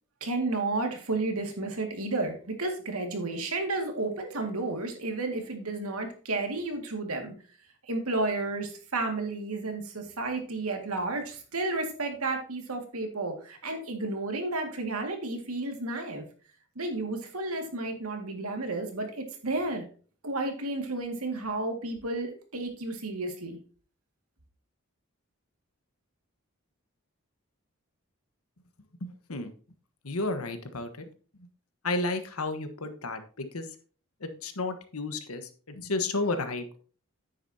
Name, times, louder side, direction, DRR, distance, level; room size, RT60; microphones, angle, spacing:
voice 1, 0.2-7.3 7.9-16.2 16.8-19.8 20.2-23.6, right 2 dB, 85° right, 4 dB, 2.0 m, -32 dB
voice 2, 29.0-29.5 30.0-30.9 31.8-33.7 34.2-36.6, left 2 dB, 90° left, 8 dB, 1.3 m, -32 dB
9.7 x 9.1 x 2.8 m, 0.40 s
head